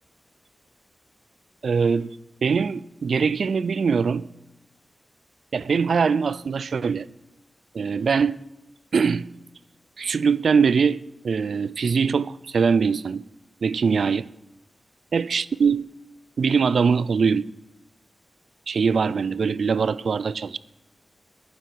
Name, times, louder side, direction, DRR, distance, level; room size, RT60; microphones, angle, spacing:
voice 1, 1.6-2.2 2.4-4.3 5.5-7.1 7.7-8.4 8.9-9.3 10.0-13.2 13.6-14.3 15.1-15.9 16.4-17.5 18.7-20.6, right 5 dB, 75° right, 0.4 m, -22 dB
11.0 x 9.5 x 6.1 m
wide cardioid pair, 125°, 0 cm